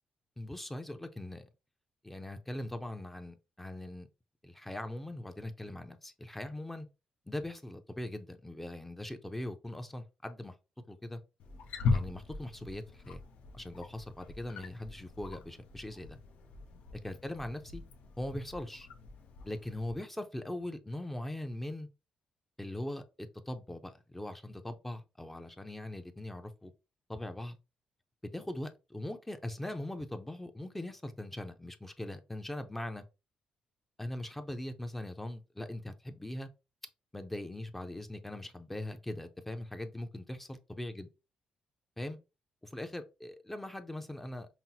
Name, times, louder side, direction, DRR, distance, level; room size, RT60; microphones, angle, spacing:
voice 1, 0.4-1.5 2.0-4.1 4.4-6.9 7.3-10.5 10.9-11.2 11.9-13.2 13.5-16.2 17.0-17.8 18.2-18.9 19.4-21.9 22.6-23.0 23.5-26.7 27.1-27.6 28.3-33.0 34.0-36.5 37.1-41.1 42.0-42.2 42.6-44.5, left 1 dB, 10° left, 0.5 m, -41 dB
Wild animals, 11.4-19.9, left 4 dB, 85° left, 0.6 m, -39 dB
5.6 x 2.0 x 2.7 m
cardioid pair, 110°, 2 cm